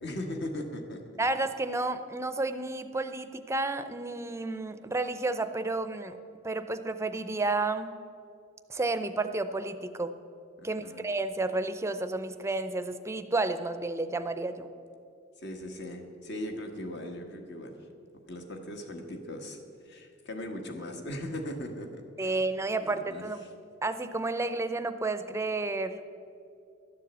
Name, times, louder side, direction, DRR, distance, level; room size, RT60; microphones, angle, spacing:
voice 1, 0.0-1.0 10.6-11.1 15.4-17.9 18.3-19.6 19.8-22.4 22.8-23.5, left 1 dB, 60° left, 4 dB, 1.5 m, -39 dB
voice 2, 1.2-6.2 6.4-7.9 8.7-10.1 10.6-14.7 22.2-23.4 23.8-26.0, right 2 dB, 15° right, 10 dB, 0.5 m, -31 dB
12.5 x 7.6 x 8.0 m, 2.4 s
head